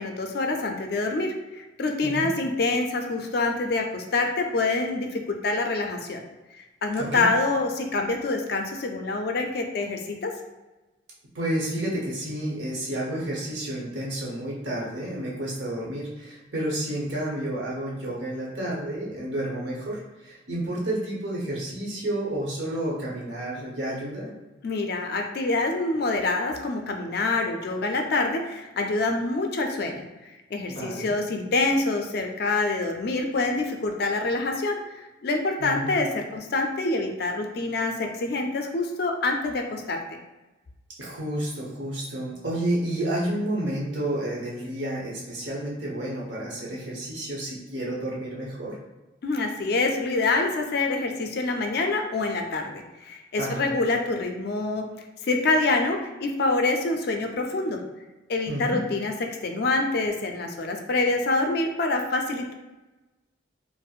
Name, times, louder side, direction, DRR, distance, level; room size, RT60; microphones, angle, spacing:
voice 1, 0.0-6.2 6.5-10.3 24.6-30.1 30.5-40.0 49.2-54.9 55.2-57.8 58.3-59.1 59.4-62.5, left 3 dB, 55° left, 3 dB, 0.4 m, -26 dB
voice 2, 7.0-7.3 11.3-24.3 30.7-31.1 35.6-35.9 41.0-48.8 53.4-53.6 58.5-58.8, right 1 dB, 70° right, -4 dB, 1.0 m, -30 dB
4.3 x 2.0 x 2.4 m, 1.1 s
head